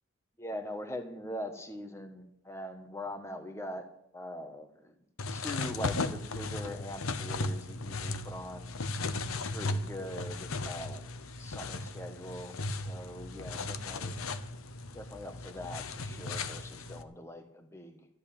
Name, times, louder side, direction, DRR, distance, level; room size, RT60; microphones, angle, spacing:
voice 1, 0.4-3.8 4.1-4.9 5.3-8.7 9.4-14.2 14.9-18.1, left 1 dB, 15° left, 6 dB, 1.3 m, -42 dB
sound 1, 5.2-17.0, left 3 dB, 90° left, 0.9 m, -36 dB
13.5 x 8.0 x 8.7 m, 0.75 s
head